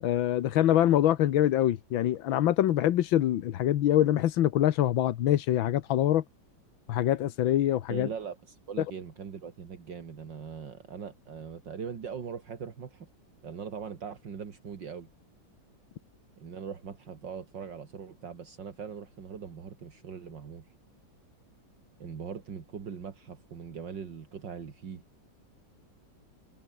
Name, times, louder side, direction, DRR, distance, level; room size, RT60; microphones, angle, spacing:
voice 1, 0.0-6.2 6.9-8.1, left 12 dB, 90° left, 1.7 m, -24 dB
voice 2, 7.9-13.1 13.4-15.1 16.4-20.6 22.0-25.0, right 6 dB, 65° right, 2.7 m, -41 dB
omnidirectional pair, 2.1 m